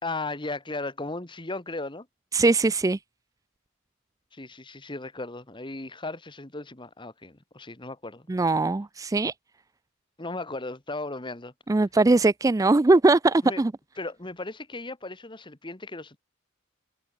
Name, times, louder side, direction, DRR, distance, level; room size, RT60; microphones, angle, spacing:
voice 1, 0.0-2.1 4.3-8.3 10.2-11.5 13.4-13.6 14.0-16.2, left 2 dB, 25° left, 1.6 m, -36 dB
voice 2, 2.3-3.0 8.3-9.3 11.7-13.7, right 2 dB, 15° right, 0.3 m, -21 dB
head